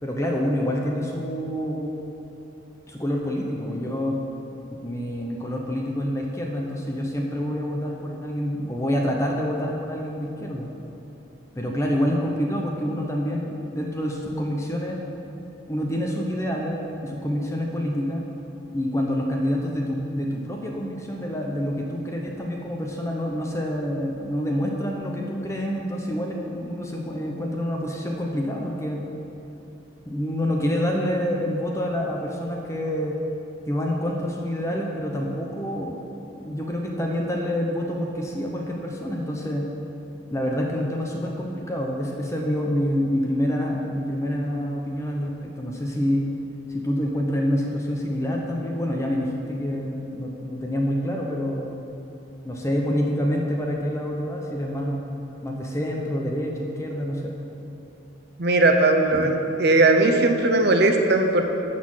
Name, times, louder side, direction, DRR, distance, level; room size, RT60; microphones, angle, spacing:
voice 1, 0.0-2.0 2.9-4.2 4.8-10.7 11.6-15.0 15.7-18.2 18.7-29.0 30.1-33.2 33.7-39.7 40.3-46.2 46.7-51.7 52.4-55.0 55.4-57.4 59.1-59.3, equal, 15° left, 0 dB, 0.8 m, -27 dB
voice 2, 58.4-59.3 59.6-61.4, right 2 dB, 55° right, 4 dB, 0.8 m, -18 dB
12.5 x 4.2 x 7.3 m, 2.9 s
head